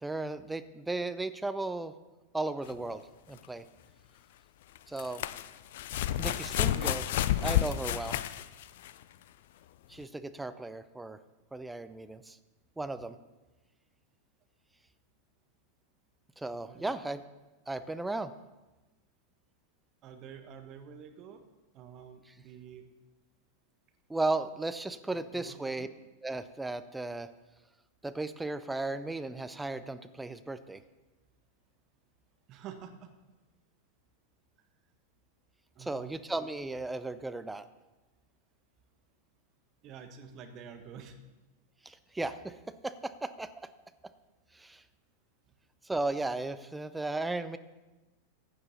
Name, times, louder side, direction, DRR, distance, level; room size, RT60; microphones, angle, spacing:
voice 1, 0.0-1.9 2.3-3.0 3.3-3.6 4.9-5.2 6.2-7.0 7.4-8.2 9.9-11.2 11.5-12.4 12.8-13.2 16.4-17.2 17.7-18.3 24.1-25.9 26.2-27.3 28.0-30.8 35.8-37.6 41.8-43.5 44.5-44.8 45.8-47.6, right 2 dB, 5° right, 12 dB, 0.6 m, -35 dB
sound 1, 2.7-2.8 4.8-9.0 10.0-10.1, left 12 dB, 55° left, 0.5 m, -30 dB
voice 2, 6.4-7.0 16.5-17.0 20.0-21.4 21.7-22.9 25.1-25.9 32.5-33.1 35.7-36.1 39.8-41.2, right 7 dB, 35° right, 7 dB, 1.5 m, -48 dB
15.5 x 9.4 x 4.2 m, 1.1 s
figure-of-eight pair, 90°, 0 cm